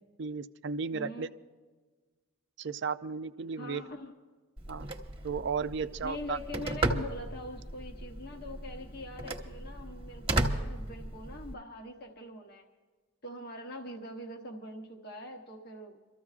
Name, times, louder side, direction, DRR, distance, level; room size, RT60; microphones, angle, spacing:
voice 1, 0.2-1.3 2.6-3.8 4.7-4.9 5.2-6.4, right 5 dB, 55° right, 12 dB, 0.4 m, -34 dB
voice 2, 0.9-1.3 3.6-4.1 6.0-12.7 13.2-16.0, left 1 dB, 50° left, 3 dB, 1.0 m, -43 dB
Telephone, 4.6-11.5, right 2 dB, 25° right, 1.1 m, -35 dB
28.0 x 14.0 x 2.4 m, 1.4 s
head